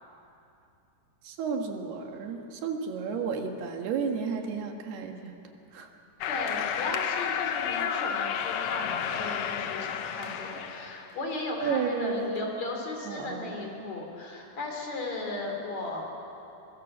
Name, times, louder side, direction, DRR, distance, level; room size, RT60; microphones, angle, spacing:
voice 1, 1.2-5.3 5.7-5.9 11.6-12.4 13.1-13.6, right 5 dB, 85° right, 3 dB, 3.7 m, -32 dB
sound 1, 6.2-11.1, left 8 dB, 85° left, 1.5 m, -31 dB
voice 2, 6.3-16.0, left 2 dB, 45° left, 1 dB, 4.3 m, -36 dB
24.5 x 22.5 x 7.4 m, 2.8 s
omnidirectional pair, 4.5 m